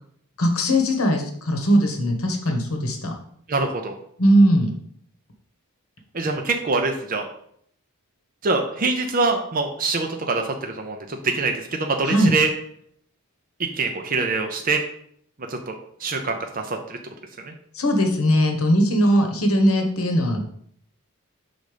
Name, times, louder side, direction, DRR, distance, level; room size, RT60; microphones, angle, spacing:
voice 1, 0.4-3.1 4.2-4.7 12.0-12.3 17.7-20.4, equal, 70° left, 4 dB, 1.1 m, -19 dB
voice 2, 3.5-3.9 6.1-7.3 8.4-12.5 13.7-14.8 15.5-15.7 16.0-17.0 17.4-17.5, right 3 dB, 40° right, 3 dB, 0.6 m, -24 dB
6.3 x 4.0 x 5.0 m, 0.66 s
head